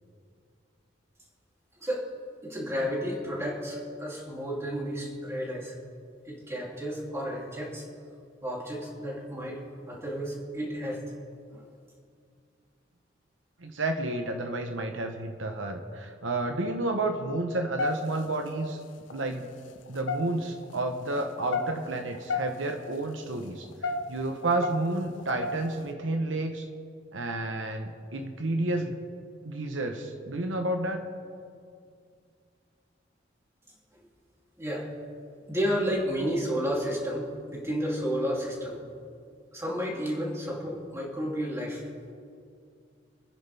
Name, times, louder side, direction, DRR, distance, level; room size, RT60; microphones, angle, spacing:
voice 1, 2.4-5.7 6.2-7.9 8.4-9.6 9.9-11.0 11.5-11.6 33.9-34.0 34.6-34.9 35.5-38.8 39.5-41.8, equal, 15° right, -3 dB, 3.0 m, -32 dB
voice 2, 13.6-18.8 19.1-19.5 19.9-23.7 24.1-26.7 27.1-29.0 29.4-31.0, right 2 dB, 85° right, 5 dB, 1.1 m, -30 dB
sound 1, 17.8-18.5 19.0-19.2 19.8-20.7 21.3-22.5 22.8-22.9 23.5-25.9, left 3 dB, 75° left, 0.9 m, -31 dB
28.0 x 10.0 x 3.5 m, 2.3 s
head